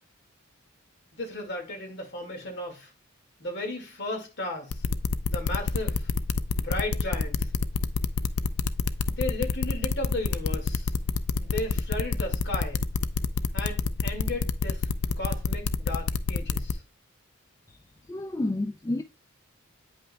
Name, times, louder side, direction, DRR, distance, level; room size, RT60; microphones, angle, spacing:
voice 1, 1.1-2.9 3.4-4.8 5.3-6.1 6.6-7.5 9.1-10.9 11.4-12.8 13.5-14.9 15.2-16.8, left 2 dB, 55° left, 1.9 m, -35 dB
sound 1, 4.7-16.7, left 5 dB, 90° left, 0.5 m, -27 dB
voice 2, 18.1-19.0, left 2 dB, 15° left, 0.3 m, -29 dB
8.7 x 5.5 x 2.2 m
head